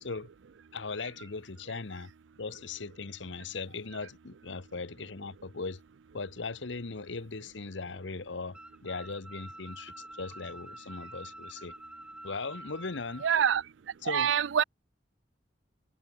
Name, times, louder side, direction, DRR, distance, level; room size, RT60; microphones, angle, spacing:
voice 1, 0.7-2.1 2.4-5.8 6.1-11.7 12.2-13.2 14.0-14.3, left 4 dB, 85° left, 1.0 m, -39 dB
sound 1, 8.5-13.4, right 1 dB, 5° right, 0.9 m, -47 dB
voice 2, 13.2-13.6 14.1-14.6, right 8 dB, 85° right, 0.4 m, -25 dB
head